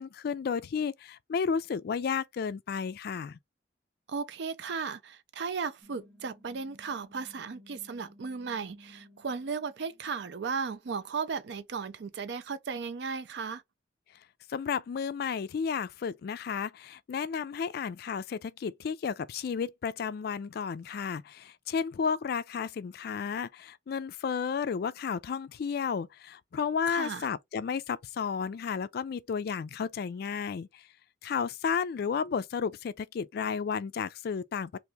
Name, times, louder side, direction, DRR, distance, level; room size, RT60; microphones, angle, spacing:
voice 1, 0.0-3.4 14.5-30.9 31.2-34.8, left 6 dB, 60° left, 0.3 m, -32 dB
voice 2, 4.1-13.6 26.9-27.3, right 5 dB, 65° right, 0.4 m, -35 dB
sound 1, 5.8-11.0, left 1 dB, 10° left, 1.3 m, -57 dB
2.8 x 2.6 x 3.3 m
head